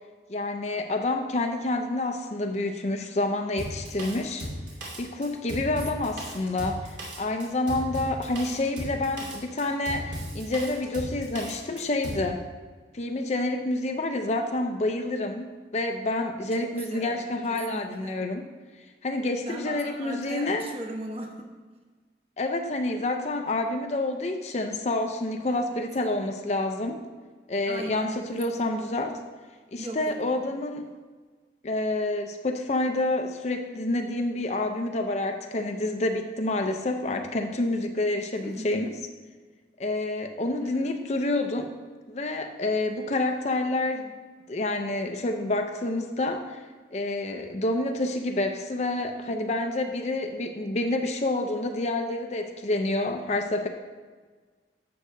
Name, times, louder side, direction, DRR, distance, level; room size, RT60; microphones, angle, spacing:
voice 1, 0.3-4.5 5.0-12.4 12.9-18.5 19.0-20.7 22.4-27.0 27.5-29.2 29.7-30.9 31.6-38.9 39.8-41.7 42.1-44.1 44.5-46.6 46.9-53.7, left 2 dB, 35° left, 5 dB, 0.5 m, -28 dB
Drum kit, 3.6-12.3, equal, 75° right, 2.4 m, -36 dB
voice 2, 5.9-6.4 16.5-18.3 19.5-21.5 25.5-25.8 27.7-28.4 29.8-30.5 38.4-38.7 40.6-40.9, right 1 dB, 30° right, 2 dB, 0.9 m, -39 dB
11.5 x 7.7 x 2.6 m, 1.4 s
head